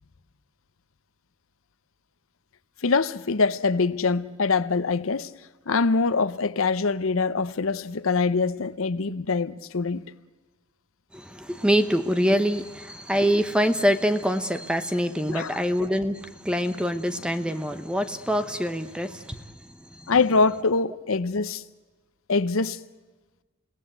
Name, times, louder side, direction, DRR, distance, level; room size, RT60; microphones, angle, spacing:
voice 1, 2.8-5.3 5.7-10.0 15.3-15.6 20.1-21.6 22.3-22.8, left 4 dB, 75° left, 0.8 m, -24 dB
voice 2, 11.1-20.1, equal, 5° right, 1.0 m, -25 dB
29.5 x 17.5 x 8.1 m
head